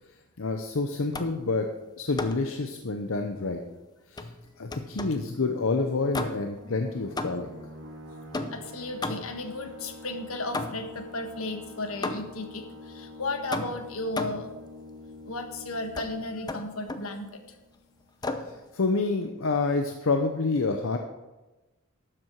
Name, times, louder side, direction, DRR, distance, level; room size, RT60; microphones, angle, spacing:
voice 1, 0.4-1.7 2.0-3.6 4.1-4.3 4.6-7.5 18.5-21.0, left 3 dB, 70° left, 5 dB, 0.8 m, -28 dB
sound 1, 1.1-1.5 2.2-2.5 4.2-5.3 6.1-6.6 7.2-7.6 8.3-9.5 10.5-11.0 12.0-12.5 13.5-14.5 15.9-16.1 16.5-17.1 18.2-18.6, left 2 dB, 20° left, 0.7 m, -34 dB
sound 2, 6.6-17.9, left 2 dB, 65° right, 1.7 m, -46 dB
voice 2, 8.5-14.5 15.3-17.4, left 2 dB, 85° left, 6 dB, 1.3 m, -34 dB
12.0 x 7.8 x 4.6 m, 1.1 s
head